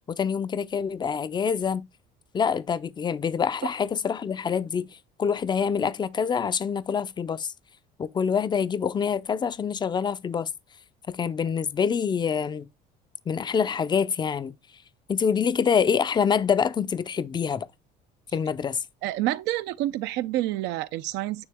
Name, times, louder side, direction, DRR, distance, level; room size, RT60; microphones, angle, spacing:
voice 1, 0.1-1.8 2.3-4.9 5.2-7.5 8.0-10.5 11.1-12.6 13.3-14.5 15.1-17.7 18.3-18.8, left 6 dB, 25° left, 0.5 m, -26 dB
voice 2, 19.0-21.4, right 15 dB, 75° right, 0.6 m, -28 dB
9.5 x 3.3 x 3.5 m
supercardioid pair, 100°, 18 cm